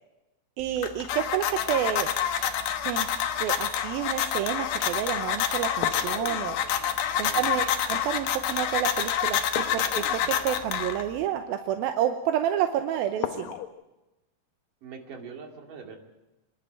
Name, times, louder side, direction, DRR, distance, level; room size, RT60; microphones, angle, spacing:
sound 1, 0.6-11.2, left 9 dB, 85° left, 3.2 m, -28 dB
voice 1, 0.6-2.1 2.8-3.1 3.4-6.6 7.2-9.4 9.7-13.5, right 10 dB, 85° right, 6 dB, 2.7 m, -29 dB
sound 2, 5.8-7.9 9.5-11.8 13.2-13.7, left 10 dB, 70° left, 1.8 m, -38 dB
voice 2, 7.1-7.6 14.8-16.0, right 5 dB, 65° right, 2 dB, 4.1 m, -43 dB
25.5 x 11.5 x 8.9 m, 1.0 s
omnidirectional pair, 4.3 m